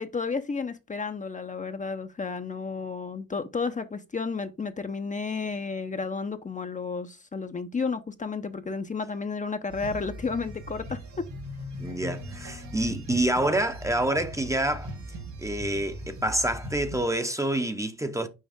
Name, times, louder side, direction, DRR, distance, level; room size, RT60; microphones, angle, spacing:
voice 1, 0.0-11.3, left 4 dB, 25° left, 0.8 m, -32 dB
sound 1, 9.7-17.0, equal, 70° right, 2.8 m, -39 dB
voice 2, 11.8-14.9 15.4-18.3, right 1 dB, 10° right, 0.8 m, -27 dB
6.4 x 4.9 x 3.5 m
cardioid pair, 90°, 30 cm